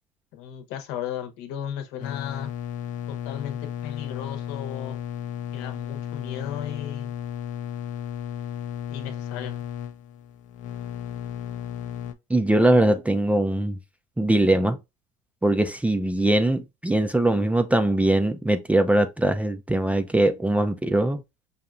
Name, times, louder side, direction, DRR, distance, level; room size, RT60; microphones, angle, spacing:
voice 1, 0.3-2.5 3.1-5.0 5.5-7.1 8.9-9.6, left 9 dB, 70° left, 0.9 m, -35 dB
sound 1, 2.0-12.1, left 10 dB, 45° left, 0.6 m, -34 dB
voice 2, 12.3-13.8 14.2-14.8 15.4-21.2, right 1 dB, 10° right, 0.4 m, -21 dB
5.4 x 2.4 x 2.5 m
hypercardioid pair, 80°, 18 cm